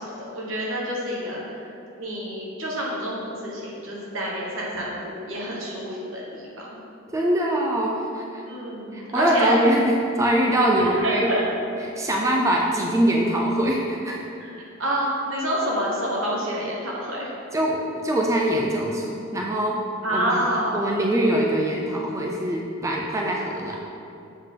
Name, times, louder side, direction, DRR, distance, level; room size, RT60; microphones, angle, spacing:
voice 1, 0.0-1.4 2.0-6.5 8.4-9.6 10.8-11.4 14.4-17.3 20.0-20.9, equal, 80° right, -4 dB, 1.3 m, -28 dB
voice 2, 7.1-8.4 8.9-11.3 11.8-14.2 17.5-19.8 20.1-23.8, right 1 dB, 15° right, -1 dB, 0.4 m, -23 dB
7.1 x 3.8 x 3.7 m, 2.6 s
head